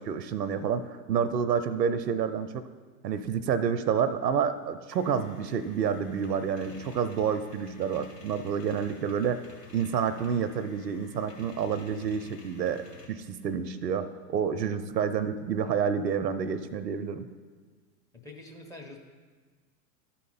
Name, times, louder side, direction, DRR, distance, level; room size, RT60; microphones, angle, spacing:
voice 1, 0.0-2.7 3.0-9.4 9.7-12.8 13.1-17.3, right 7 dB, 85° right, 13 dB, 0.6 m, -29 dB
sound 1, 4.9-13.1, left 4 dB, 80° left, 2.0 m, -51 dB
voice 2, 18.1-19.0, left 2 dB, 5° left, 4 dB, 0.6 m, -45 dB
12.0 x 4.2 x 3.9 m, 1.4 s
figure-of-eight pair, 100°, 48 cm